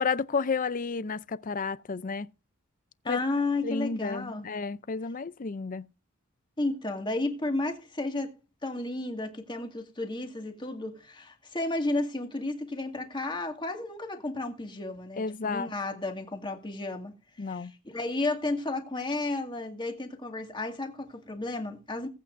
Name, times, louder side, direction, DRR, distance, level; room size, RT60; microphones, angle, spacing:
voice 1, 0.0-2.3 3.1-3.2 3.6-5.9 15.2-15.7 17.4-17.7, left 4 dB, 40° left, 0.5 m, -31 dB
voice 2, 3.0-4.4 6.6-17.1 17.4-22.1, left 2 dB, 20° left, 2.1 m, -32 dB
19.5 x 8.5 x 2.6 m
head